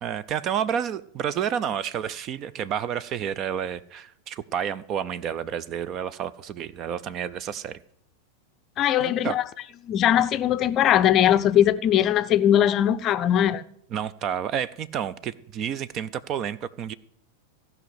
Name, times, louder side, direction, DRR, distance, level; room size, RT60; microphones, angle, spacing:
voice 1, 0.0-7.8 9.0-9.4 13.9-16.9, right 8 dB, 35° right, 0.5 m, -30 dB
voice 2, 8.8-9.4 9.8-13.6, left 11 dB, 30° left, 0.5 m, -20 dB
15.5 x 5.4 x 7.9 m
figure-of-eight pair, 90°, 0 cm